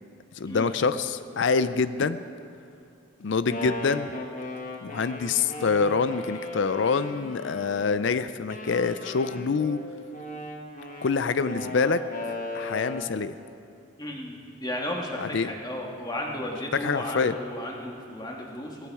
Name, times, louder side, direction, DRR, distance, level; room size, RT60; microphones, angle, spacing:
voice 1, 0.4-2.2 3.2-4.1 4.8-9.8 11.0-12.0 12.5-13.3 15.2-15.5 16.8-17.3, left 5 dB, 60° left, 13 dB, 0.4 m, -26 dB
Wind instrument woodwind instrument, 3.3-8.0 8.5-13.2, left 2 dB, 40° left, 1.6 m, -37 dB
voice 2, 14.0-18.9, left 1 dB, 20° left, 0 dB, 1.8 m, -34 dB
18.0 x 14.5 x 4.8 m, 2.5 s
head